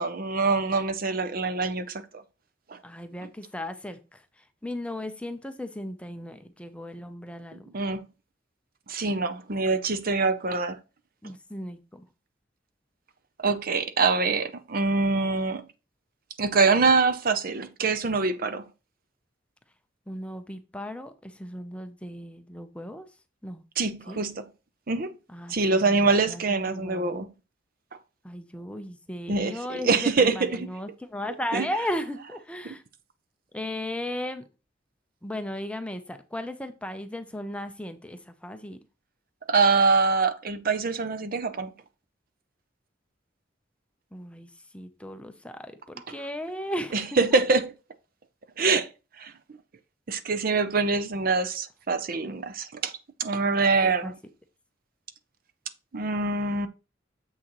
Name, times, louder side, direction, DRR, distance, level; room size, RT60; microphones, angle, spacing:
voice 1, 0.0-2.2 2.7-2.8 7.7-8.0 8.9-10.8 13.4-15.6 16.4-18.6 23.8-24.5 24.9-25.1 25.5-27.3 29.3-30.7 31.5-31.7 32.6-32.7 39.5-41.7 46.9-47.7 48.6-48.9 49.2-49.3 50.1-52.9 53.2-54.1 55.9-56.7, right 4 dB, 45° right, 0.6 m, -24 dB
voice 2, 2.8-7.7 11.2-12.1 20.1-23.1 23.4-23.6 24.1-24.2 25.3-27.2 28.2-32.8 33.5-34.4 35.2-38.8 44.1-47.1 53.7-54.1, left 1 dB, 5° left, 0.5 m, -36 dB
7.3 x 6.2 x 3.0 m
head